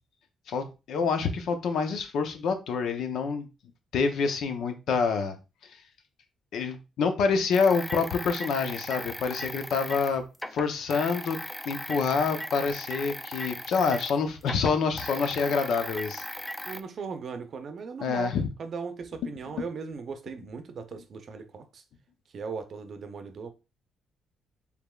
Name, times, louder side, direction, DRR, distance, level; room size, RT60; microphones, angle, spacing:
voice 1, 0.5-3.5 3.9-5.4 6.5-10.2 10.5-11.4 11.6-16.2 18.0-18.5, left 5 dB, 75° left, 0.7 m, -27 dB
sound 1, 7.5-14.2 14.4-16.8, equal, 5° left, 0.3 m, -38 dB
voice 2, 16.7-21.8 22.3-23.5, right 5 dB, 55° right, 0.6 m, -38 dB
4.8 x 3.5 x 2.3 m
cardioid pair, 90°, 0 cm